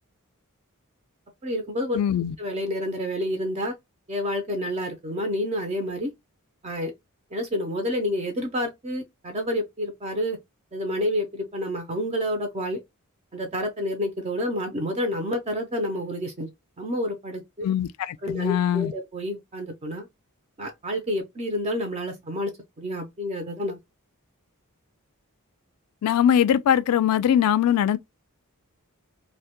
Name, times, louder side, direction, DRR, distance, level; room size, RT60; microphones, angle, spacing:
voice 1, 1.4-2.0 2.4-3.7 4.1-6.1 6.6-6.9 7.3-10.4 10.7-12.8 13.3-17.7 18.2-20.1 20.6-23.8, left 1 dB, 30° right, 0.5 m, -29 dB
voice 2, 1.9-2.4 17.6-18.9 26.0-28.0, left 9 dB, 80° left, 0.3 m, -21 dB
2.1 x 2.1 x 2.8 m
head